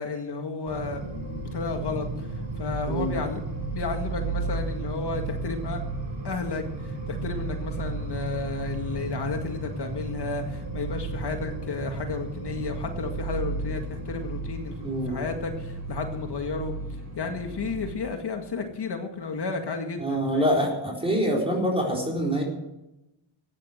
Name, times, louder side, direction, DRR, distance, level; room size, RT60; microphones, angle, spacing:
voice 1, 0.0-3.4 3.7-5.8 6.2-16.8 17.2-20.7, left 4 dB, 55° left, 4 dB, 1.9 m, -32 dB
sound 1, 0.7-17.9, right 3 dB, 60° right, 5.8 m, -34 dB
voice 2, 14.8-15.3 20.0-22.4, equal, 10° right, -2 dB, 4.2 m, -25 dB
14.5 x 9.4 x 7.9 m, 0.93 s
wide cardioid pair, 115°, 48 cm